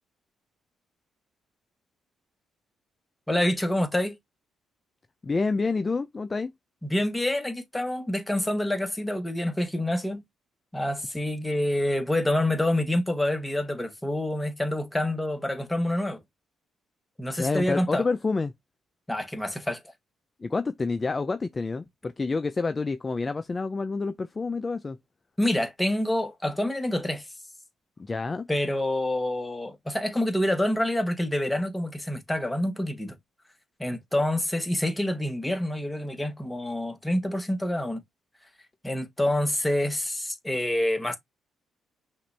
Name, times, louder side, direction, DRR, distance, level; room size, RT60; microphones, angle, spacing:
voice 1, 3.3-4.2 6.8-10.2 10.7-16.2 17.2-18.1 19.1-19.8 25.4-27.3 28.5-33.2 33.8-38.0 38.8-41.2, left 1 dB, 10° left, 1.2 m, -27 dB
voice 2, 5.2-6.5 17.4-18.5 20.4-25.0 28.0-28.5, left 4 dB, 25° left, 0.4 m, -28 dB
5.7 x 2.5 x 3.3 m
cardioid pair, 90°, 0 cm